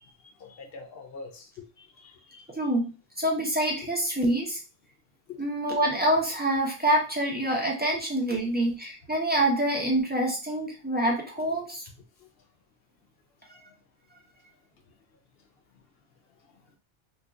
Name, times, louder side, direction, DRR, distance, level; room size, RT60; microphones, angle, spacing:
voice 1, 0.4-2.4 5.3-5.4 7.9-8.0, left 5 dB, 60° left, 5 dB, 0.8 m, -44 dB
voice 2, 2.6-4.6 5.4-11.8, right 1 dB, 10° right, -2 dB, 0.8 m, -26 dB
2.8 x 2.4 x 3.6 m, 0.32 s
omnidirectional pair, 1.2 m